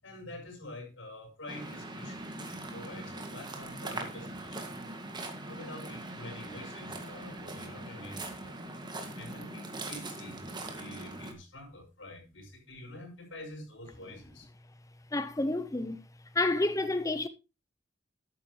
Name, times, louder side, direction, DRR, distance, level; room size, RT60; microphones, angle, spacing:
voice 1, 0.0-2.3 2.5-4.6 5.5-8.6 9.2-14.5 16.5-16.7, left 1 dB, 85° left, 5.7 m, -47 dB
Waves surf, 1.5-11.3, right 2 dB, 25° right, 2.1 m, -41 dB
voice 2, 15.1-16.0 16.3-17.3, left 2 dB, 15° left, 0.7 m, -29 dB
12.5 x 9.5 x 3.2 m
head